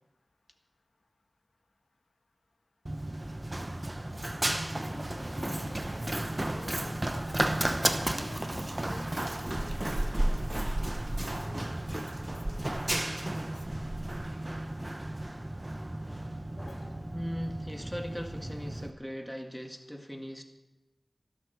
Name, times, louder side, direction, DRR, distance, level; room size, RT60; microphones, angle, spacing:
Run, 2.9-18.9, right 1 dB, 30° right, 0.9 m, -33 dB
voice 1, 4.8-9.3 9.5-10.9 11.3-13.0 13.2-13.8 16.6-17.0, left 2 dB, 80° left, 4 dB, 1.6 m, -50 dB
voice 2, 17.1-20.4, equal, ahead, 4 dB, 1.8 m, -39 dB
12.5 x 12.0 x 6.7 m, 1.0 s
wide cardioid pair, 50°, 0 cm